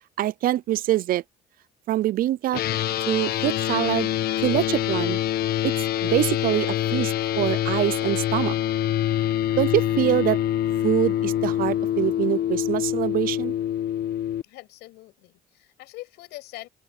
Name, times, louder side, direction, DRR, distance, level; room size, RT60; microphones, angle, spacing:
voice 1, 0.2-1.2 1.9-2.6 3.1-4.1 4.4-5.2 5.6-5.7 6.0-8.5 9.6-10.4 10.8-13.5, right 14 dB, 60° right, 0.5 m, -24 dB
sound 1, 2.5-14.4, left 12 dB, 65° left, 1.2 m, -25 dB
voice 2, 14.4-16.7, left 18 dB, 90° left, 6.4 m, -43 dB
open air
cardioid pair, 110°, 17 cm